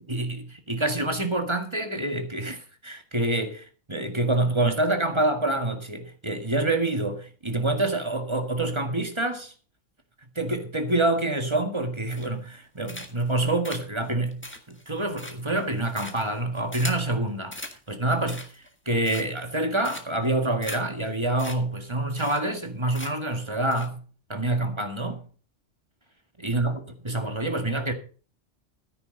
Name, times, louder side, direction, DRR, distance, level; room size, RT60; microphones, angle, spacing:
voice 1, 0.1-9.5 10.4-17.6 17.9-18.5 18.9-24.0 24.3-25.3 26.4-26.8 27.0-27.9, right 2 dB, 25° right, 1.8 m, -27 dB
sound 1, 12.1-12.5 12.9-13.3 13.6-17.1 17.5-17.8 18.1-18.7 19.0-19.5 19.8-20.3 20.6-20.8 21.1-21.2 21.4-21.6 21.8-21.9 22.2-22.7 22.9-23.3 23.7-23.9, left 1 dB, 10° left, 1.5 m, -39 dB
13.0 x 10.0 x 3.9 m
omnidirectional pair, 1.3 m